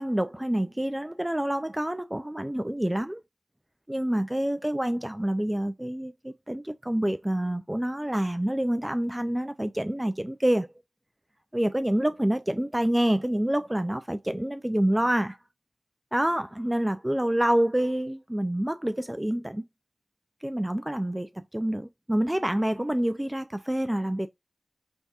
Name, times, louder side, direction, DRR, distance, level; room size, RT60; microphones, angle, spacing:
voice 1, 0.0-3.2 3.9-10.7 11.5-15.4 16.1-19.6 20.4-24.3, right 1 dB, 15° right, 0.3 m, -27 dB
4.0 x 3.5 x 2.3 m
wide cardioid pair, 65°, 0 cm